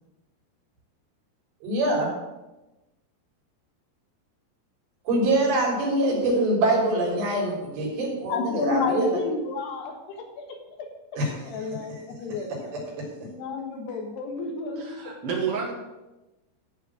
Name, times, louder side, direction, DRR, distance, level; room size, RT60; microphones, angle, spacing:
voice 1, 1.6-2.1 5.1-9.1 11.2-11.3, right 1 dB, 85° right, -3 dB, 5.9 m, -24 dB
voice 2, 8.3-10.9 11.5-12.8 13.2-15.0, left 4 dB, 75° left, 3 dB, 3.5 m, -31 dB
voice 3, 14.8-15.7, right 6 dB, 45° right, 0 dB, 2.2 m, -29 dB
14.0 x 4.9 x 7.5 m, 1.0 s
omnidirectional pair, 4.9 m